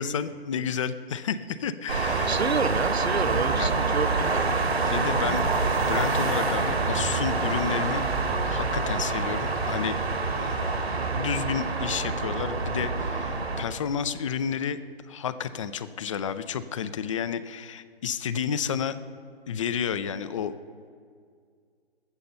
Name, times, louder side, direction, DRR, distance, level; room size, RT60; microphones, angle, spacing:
voice 1, 0.0-2.4 3.6-3.7 4.9-5.4 5.7-8.0 8.5-10.0 10.4-14.8 15.1-19.0 19.5-20.5, left 7 dB, 30° left, 14 dB, 0.5 m, -31 dB
sound 1, 1.9-13.6, right 3 dB, 70° right, 2.1 m, -26 dB
voice 2, 2.3-4.4, right 5 dB, 90° right, 14 dB, 0.7 m, -29 dB
21.0 x 7.7 x 5.6 m, 2.1 s
figure-of-eight pair, 130°, 31 cm